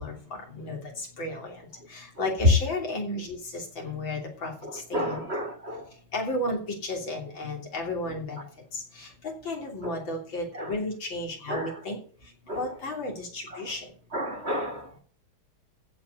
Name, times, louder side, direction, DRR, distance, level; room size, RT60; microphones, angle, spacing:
voice 1, 0.0-5.5 6.1-8.4 8.7-13.9, left 2 dB, 70° left, 4.0 m, -34 dB
voice 2, 4.9-5.9 9.8-9.9 10.6-10.7 11.5-11.7 12.5-12.6 14.1-15.0, equal, 35° right, 1.9 m, -32 dB
15.0 x 5.2 x 8.0 m
omnidirectional pair, 2.2 m